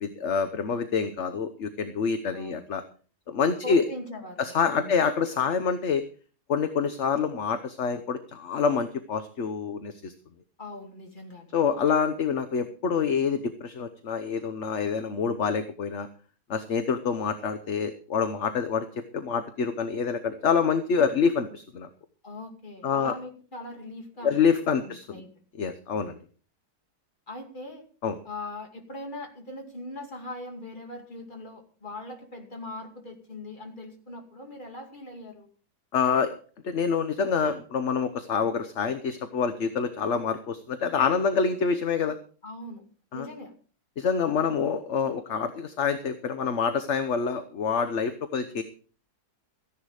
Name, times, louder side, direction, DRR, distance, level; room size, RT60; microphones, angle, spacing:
voice 1, 0.0-2.8 3.3-3.8 4.4-6.0 6.5-10.1 11.5-16.1 16.5-18.9 19.1-21.9 22.8-23.1 24.2-25.2 25.6-26.2 28.0-28.1 35.9-36.3 36.6-42.2 43.1-43.3 44.0-48.6, left 6 dB, 50° left, 9 dB, 1.2 m, -26 dB
voice 2, 2.3-2.6 3.6-5.0 10.6-11.5 22.2-24.4 24.6-25.3 27.3-27.8 28.2-35.5 42.4-42.8 43.1-43.5, left 2 dB, 30° left, 3 dB, 2.6 m, -41 dB
15.0 x 10.5 x 4.9 m, 0.40 s
omnidirectional pair, 1.7 m